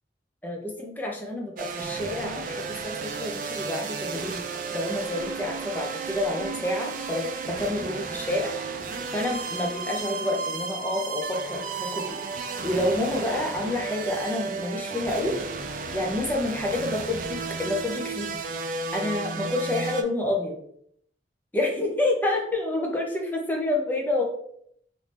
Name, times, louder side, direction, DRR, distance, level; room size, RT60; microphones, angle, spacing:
voice 1, 0.4-2.9 3.2-4.4 4.7-8.5 9.1-12.2 12.6-15.4 15.9-18.4 18.9-20.6 21.5-24.2, left 2 dB, 10° left, -1 dB, 0.6 m, -28 dB
sound 1, 1.6-20.0, right 4 dB, 45° right, 0.3 m, -33 dB
3.1 x 2.7 x 3.3 m, 0.68 s
head